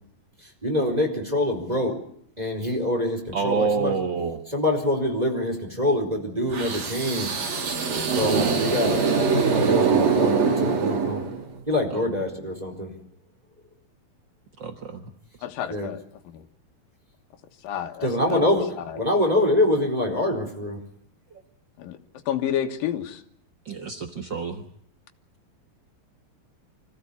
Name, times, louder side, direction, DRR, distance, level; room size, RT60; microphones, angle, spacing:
voice 1, 0.4-1.9 2.4-4.0 4.5-7.3 8.1-9.0 9.4-11.2 11.7-12.9 15.7-15.9 18.0-18.6 18.9-20.8, left 1 dB, 10° right, 3 dB, 4.2 m, -25 dB
voice 2, 3.3-4.4 11.9-12.1 14.6-15.1 21.3-21.4 23.6-24.6, right 5 dB, 60° right, 6 dB, 1.1 m, -28 dB
sound 1, 6.5-11.6, right 5 dB, 80° right, 5.3 m, -23 dB
voice 3, 15.4-16.0 16.3-16.4 17.6-18.5 21.8-22.0 22.3-23.2, left 10 dB, 75° left, 5 dB, 3.1 m, -29 dB
25.0 x 16.0 x 8.5 m, 0.68 s
omnidirectional pair, 4.1 m